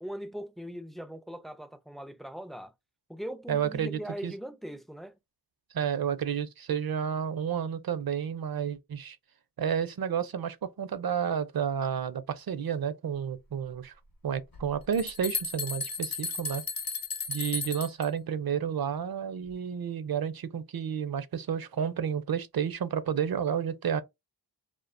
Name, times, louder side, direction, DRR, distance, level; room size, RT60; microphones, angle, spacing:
voice 1, 0.0-2.7 3.1-5.2, equal, ahead, 0.3 m, -40 dB
voice 2, 3.5-4.3 5.7-9.2 9.6-13.9 14.2-16.6 17.3-24.0, right 8 dB, 55° right, 0.5 m, -31 dB
sound 1, 14.5-14.6 14.9-18.1, left 4 dB, 50° left, 0.8 m, -34 dB
2.3 x 2.2 x 2.4 m
cardioid pair, 40°, 44 cm